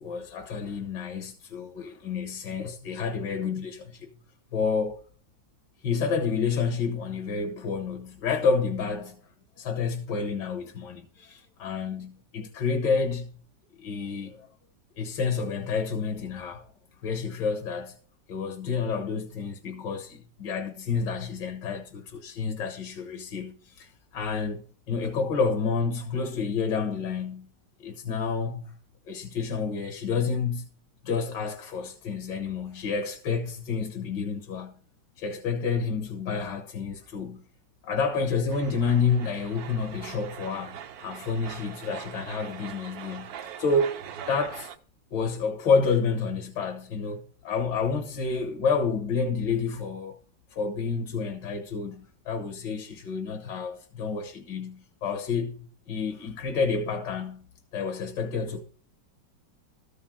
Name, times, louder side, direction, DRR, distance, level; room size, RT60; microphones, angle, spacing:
voice 1, 0.0-4.1 4.5-5.0 5.8-9.2 9.6-13.3 13.8-14.5 15.0-16.7 17.0-18.0 18.3-27.5 27.8-28.7 29.1-30.7 31.0-34.8 35.2-37.5 37.8-44.0 44.3-44.7 45.1-50.2 50.5-58.6, left 5 dB, 75° left, 1.9 m, -29 dB
sound 1, 38.5-44.8, right 9 dB, 65° right, 1.1 m, -42 dB
13.5 x 5.0 x 7.3 m
omnidirectional pair, 1.9 m